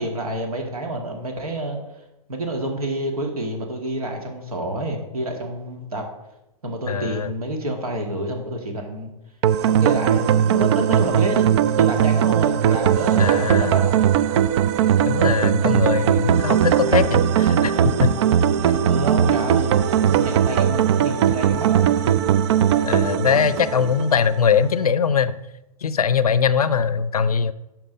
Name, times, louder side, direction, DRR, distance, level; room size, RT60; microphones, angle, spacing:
voice 1, 0.0-1.8 2.3-6.0 6.6-9.1 9.7-14.0 18.8-21.9, right 1 dB, 75° right, 3 dB, 2.2 m, -28 dB
voice 2, 6.9-7.3 13.2-13.8 15.0-18.1 18.7-18.8 22.8-25.4 25.8-27.5, left 6 dB, 85° left, 15 dB, 0.6 m, -21 dB
sound 1, 9.4-24.5, right 9 dB, 50° right, 0.4 m, -19 dB
10.5 x 6.0 x 4.0 m, 0.95 s
hypercardioid pair, 115°, 19 cm